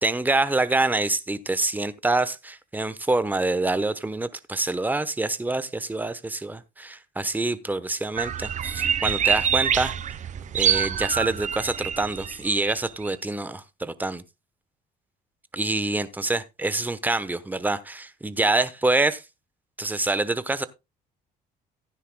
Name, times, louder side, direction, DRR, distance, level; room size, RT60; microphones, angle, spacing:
voice 1, 0.0-10.0 10.5-14.2 15.5-19.2 19.8-20.6, right 2 dB, 10° right, 0.9 m, -26 dB
sound 1, 8.2-13.1, right 8 dB, 45° right, 0.8 m, -26 dB
15.0 x 10.0 x 2.2 m
cardioid pair, 110°, 17 cm